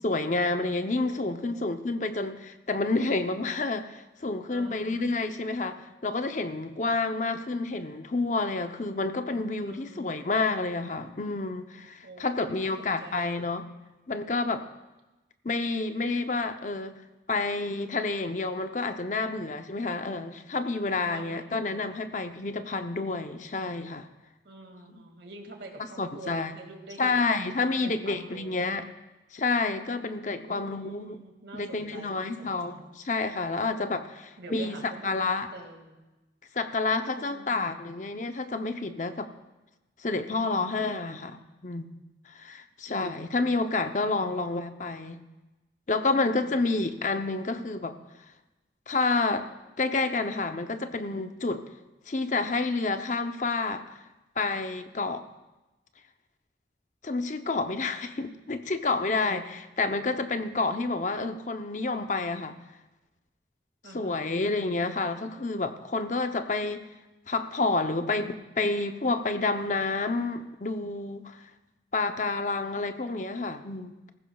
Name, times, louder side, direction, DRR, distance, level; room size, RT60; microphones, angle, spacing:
voice 1, 0.0-13.6 14.1-14.7 15.4-17.0 17.3-24.1 24.9-25.0 26.0-26.5 27.0-28.8 29.3-31.2 31.5-35.5 36.5-39.3 40.0-41.4 41.6-41.9 42.3-45.2 45.9-47.9 48.9-49.5 49.8-51.6 52.1-54.0 54.4-55.2 57.0-62.5 63.9-66.9 67.3-71.4 71.9-74.1, left 3 dB, 45° left, 8 dB, 0.7 m, -29 dB
voice 2, 1.0-1.8 4.5-5.2 9.6-10.4 12.0-13.5 21.1-21.8 24.4-28.7 30.4-32.9 34.4-35.9 36.9-37.9 40.2-40.9 46.1-46.7 63.8-64.5, right 2 dB, 80° right, 2 dB, 2.2 m, -47 dB
19.0 x 15.0 x 2.3 m, 1.1 s
head